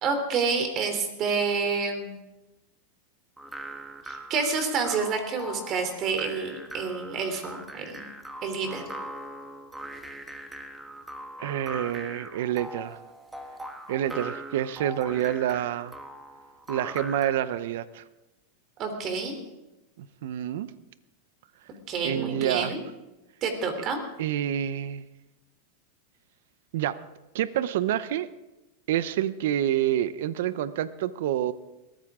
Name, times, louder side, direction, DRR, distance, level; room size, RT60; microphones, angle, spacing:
voice 1, 0.0-2.2 4.1-8.1 8.4-8.8 18.8-19.3 21.9-22.8 23.4-24.0, right 4 dB, 40° right, 6 dB, 3.1 m, -28 dB
sound 1, 3.4-17.6, right 1 dB, 10° right, 1.7 m, -41 dB
voice 2, 11.4-13.0 13.9-16.0 16.7-18.0 20.0-20.7 22.0-22.7 24.2-25.1 26.7-27.0 27.3-28.3 28.9-31.5, right 11 dB, 70° right, 15 dB, 0.7 m, -28 dB
21.0 x 14.5 x 3.7 m, 1.0 s
supercardioid pair, 125°, 0 cm